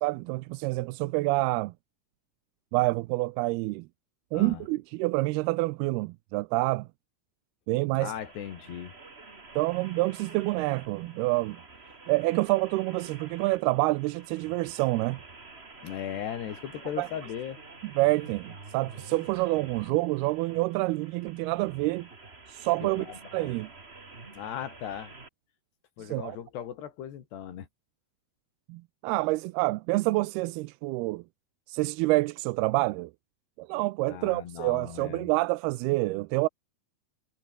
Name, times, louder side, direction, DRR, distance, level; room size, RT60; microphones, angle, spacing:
voice 1, 0.0-1.7 2.7-3.9 4.3-6.9 7.7-8.1 9.6-11.6 12.1-15.2 17.0-17.1 18.0-22.1 22.5-23.1 23.3-23.7 26.0-26.4 28.7-31.2 31.7-33.1 33.6-36.5, right 21 dB, 80° right, 2.5 m, -27 dB
voice 2, 4.3-4.6 8.0-8.9 15.8-17.6 22.8-23.5 24.3-25.1 26.0-27.7 34.1-35.3, left 9 dB, 85° left, 4.7 m, -38 dB
sound 1, 8.1-25.3, right 3 dB, 20° right, 1.9 m, -49 dB
omnidirectional pair, 4.7 m